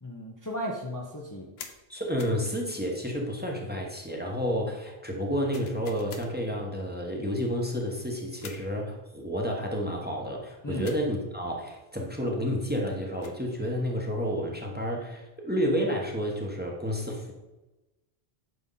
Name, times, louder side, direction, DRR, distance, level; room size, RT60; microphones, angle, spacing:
voice 1, 0.0-1.5 10.6-10.9, equal, 20° left, -2 dB, 1.0 m, -35 dB
sound 1, 1.6-1.8 2.2-2.4 5.5-6.3 8.4-8.7 10.8-11.1 13.0-13.4, left 5 dB, 75° left, 1.2 m, -45 dB
voice 2, 1.9-17.3, equal, 10° right, 0 dB, 1.3 m, -30 dB
9.5 x 6.2 x 4.1 m, 1.1 s
omnidirectional pair, 1.1 m